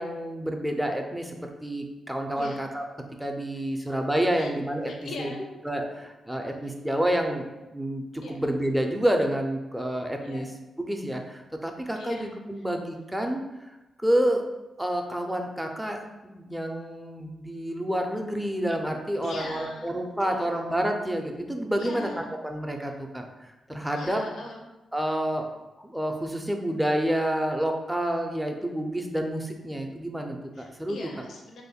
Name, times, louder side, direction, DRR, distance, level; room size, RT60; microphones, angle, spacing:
voice 1, 0.0-2.8 3.2-4.9 5.2-5.3 5.7-7.5 7.7-10.5 10.8-13.4 14.0-14.4 14.8-22.1 22.4-24.2 24.9-25.5 25.8-31.0, right 1 dB, 5° right, 3 dB, 0.4 m, -29 dB
voice 2, 4.9-5.4 6.6-6.9 8.2-8.4 10.2-10.5 11.9-12.3 19.2-20.5 21.8-22.2 23.9-24.7 25.0-25.2 30.5-31.6, left 2 dB, 65° left, 1 dB, 0.5 m, -40 dB
3.0 x 2.1 x 4.1 m, 1.0 s
wide cardioid pair, 140°, 0 cm